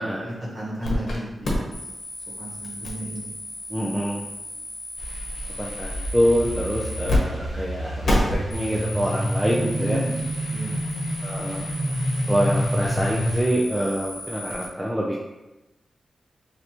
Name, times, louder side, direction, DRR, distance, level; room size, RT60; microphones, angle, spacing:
voice 1, 0.0-1.8 2.4-3.3 9.7-10.2 10.5-10.8, equal, 30° right, -5 dB, 1.5 m, -33 dB
sound 1, 0.8-1.2 1.4-7.2 7.4-7.5 8.0-14.7, left 1 dB, 70° left, 1.0 m, -32 dB
voice 2, 3.7-4.2 5.6-8.2 8.5-10.0 11.2-11.7 12.3-15.2, equal, 10° right, -4 dB, 0.5 m, -25 dB
sound 2, 5.0-13.4, equal, 50° right, 0.9 m, -28 dB
3.3 x 2.6 x 4.4 m, 1.0 s
wide cardioid pair, 90°, 0 cm